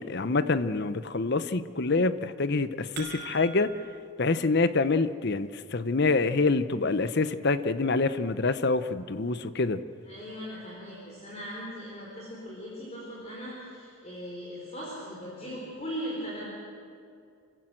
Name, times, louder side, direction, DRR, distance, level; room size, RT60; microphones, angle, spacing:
voice 1, 0.0-3.7 4.2-9.8, left 3 dB, 50° left, 13 dB, 0.7 m, -26 dB
sound 1, 2.5-4.0, right 7 dB, 50° right, 5.1 m, -42 dB
voice 2, 10.1-16.4, equal, 30° left, -5 dB, 4.4 m, -39 dB
27.5 x 15.5 x 7.8 m, 2.4 s
head